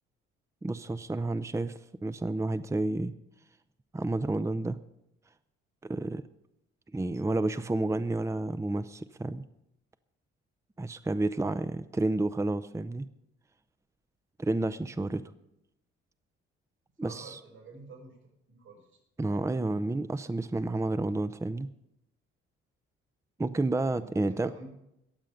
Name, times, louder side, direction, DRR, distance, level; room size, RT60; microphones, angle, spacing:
voice 1, 0.6-3.1 3.9-4.8 5.8-6.2 6.9-9.4 10.8-13.1 14.4-15.2 17.0-17.4 19.2-21.7 23.4-24.5, right 2 dB, 10° right, 12 dB, 0.7 m, -30 dB
voice 2, 17.0-18.2 18.5-19.0 23.9-24.7, right 3 dB, 85° right, -5 dB, 5.7 m, -49 dB
22.0 x 7.6 x 5.3 m, 0.82 s
hypercardioid pair, 50°, 31 cm